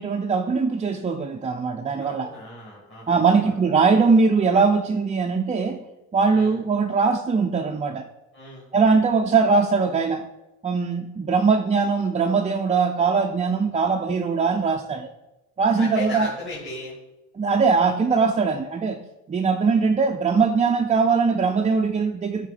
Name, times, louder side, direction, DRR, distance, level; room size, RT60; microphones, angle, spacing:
voice 1, 0.0-2.3 3.1-5.8 6.1-8.1 8.7-10.3 10.6-15.1 15.6-16.3 17.4-19.0 19.3-22.5, right 4 dB, 20° right, 4 dB, 0.3 m, -21 dB
voice 2, 2.0-3.6 6.3-6.6 8.3-8.7 15.8-17.0, left 2 dB, 30° left, -6 dB, 2.2 m, -37 dB
9.5 x 3.6 x 4.1 m, 1.0 s
cardioid pair, 95°, 39 cm